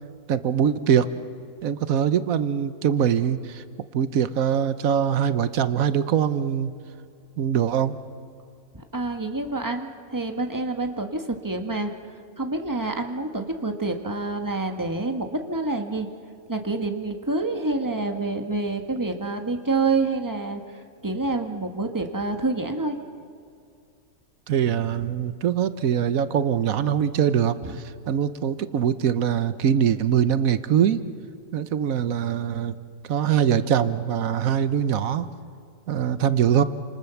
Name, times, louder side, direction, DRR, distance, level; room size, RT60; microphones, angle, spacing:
voice 1, 0.3-1.1 1.6-3.6 3.9-6.7 7.4-8.0 24.5-31.0 31.5-32.7 33.1-35.3 35.9-36.6, right 9 dB, 90° right, 13 dB, 1.3 m, -23 dB
voice 2, 8.7-11.9 12.4-16.1 16.5-23.0, right 3 dB, 15° right, 5 dB, 1.6 m, -27 dB
29.0 x 27.5 x 7.1 m, 2.3 s
omnidirectional pair, 1.4 m